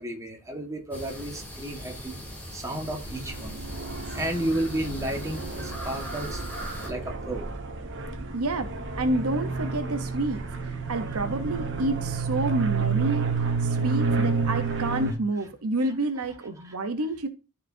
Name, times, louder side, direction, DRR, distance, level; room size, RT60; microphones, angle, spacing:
voice 1, 0.0-2.2 2.5-3.6 4.1-6.4 6.8-7.5 16.6-16.8, right 1 dB, 15° right, 1.5 m, -32 dB
sound 1, 0.9-6.9, equal, 10° left, 3.2 m, -40 dB
sound 2, 2.8-15.1, right 4 dB, 55° right, 1.4 m, -30 dB
voice 2, 8.3-13.3 13.6-17.3, right 2 dB, 75° right, 0.9 m, -29 dB
13.5 x 4.9 x 2.7 m
head